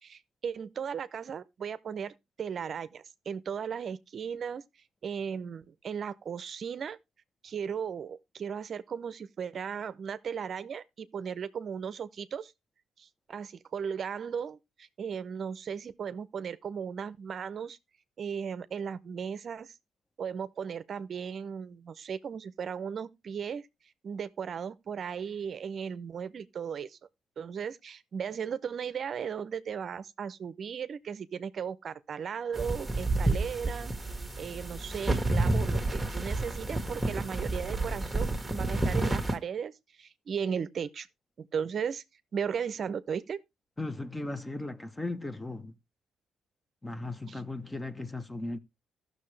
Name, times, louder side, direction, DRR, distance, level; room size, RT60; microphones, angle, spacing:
voice 1, 0.0-4.6 5.0-7.0 7.4-12.5 13.0-17.8 18.2-19.8 20.2-23.7 24.0-27.0 27.4-33.9 34.4-41.1 41.4-42.0 42.3-43.4 47.3-47.4, right 7 dB, 50° right, 0.6 m, -36 dB
sound 1, 32.5-39.3, right 2 dB, 5° right, 1.6 m, -30 dB
voice 2, 43.8-45.7 46.8-48.6, left 2 dB, 15° left, 0.8 m, -37 dB
14.5 x 6.3 x 3.2 m
cardioid pair, 90°, 0 cm